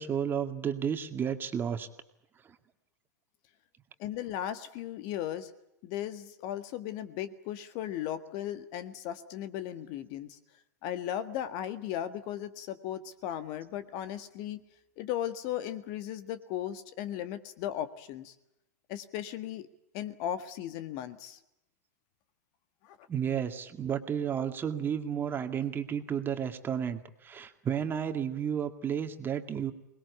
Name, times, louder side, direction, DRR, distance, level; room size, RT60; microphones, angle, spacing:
voice 1, 0.0-1.9 23.1-29.7, right 8 dB, 20° right, 7 dB, 2.1 m, -32 dB
voice 2, 4.0-5.5 5.8-10.4 10.8-14.6 15.0-18.3 18.9-19.6 19.9-21.4 22.9-23.0, left 11 dB, 45° left, 11 dB, 1.7 m, -36 dB
24.0 x 20.5 x 8.3 m, 0.84 s
hypercardioid pair, 100°, 9 cm